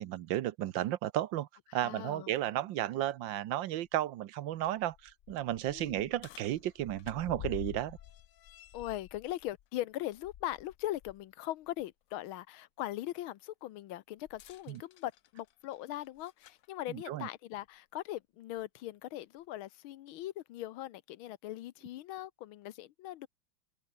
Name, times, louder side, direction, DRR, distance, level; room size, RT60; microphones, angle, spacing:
voice 1, 0.0-8.0 14.7-14.8 16.9-17.3, right 13 dB, 75° right, 1.4 m, -34 dB
voice 2, 1.7-2.3 5.7-6.1 8.7-23.3, left 14 dB, 90° left, 1.6 m, -40 dB
sound 1, 3.9-4.0 4.5-11.2 11.6-11.8 14.2-16.7 17.7-17.8 18.6-18.7, left 12 dB, 65° left, 0.8 m, -50 dB
open air
omnidirectional pair, 2.2 m